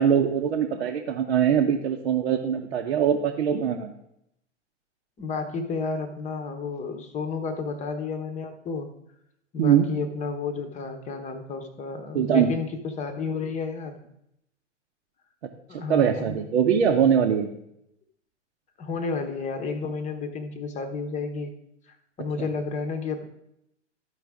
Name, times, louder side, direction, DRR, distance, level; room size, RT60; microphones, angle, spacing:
voice 1, 0.0-3.9 9.6-9.9 12.1-12.5 15.7-17.5 22.4-22.5, right 8 dB, 65° right, 0 dB, 0.9 m, -22 dB
voice 2, 5.2-8.9 9.5-14.0 15.7-16.4 18.8-21.5 21.9-23.2, left 4 dB, 20° left, 7 dB, 0.9 m, -31 dB
12.5 x 4.9 x 3.5 m, 0.78 s
hypercardioid pair, 110°, 36 cm